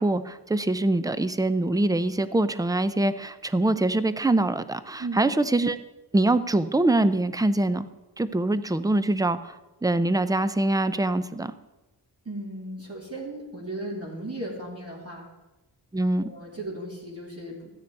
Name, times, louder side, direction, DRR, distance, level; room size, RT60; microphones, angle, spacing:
voice 1, 0.0-5.8 6.1-7.9 8.2-9.6 9.8-11.5 15.9-16.3, right 2 dB, 10° right, 13 dB, 0.5 m, -24 dB
voice 2, 12.2-15.2 16.2-17.7, right 1 dB, 35° right, -2 dB, 2.8 m, -36 dB
13.5 x 9.5 x 4.7 m, 1.1 s
wide cardioid pair, 115°, 43 cm